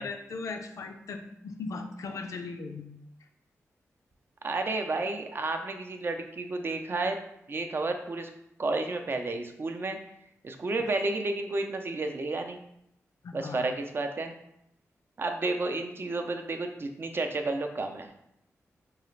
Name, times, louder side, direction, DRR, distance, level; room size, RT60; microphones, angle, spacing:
voice 1, 0.0-2.9 13.2-13.7, left 4 dB, 80° left, 4 dB, 0.5 m, -38 dB
voice 2, 4.4-7.2 7.5-8.3 8.6-10.0 10.4-12.6 13.3-14.3 15.2-18.1, right 2 dB, 45° right, 5 dB, 0.5 m, -31 dB
4.6 x 2.4 x 3.1 m, 0.79 s
wide cardioid pair, 90°, 5 cm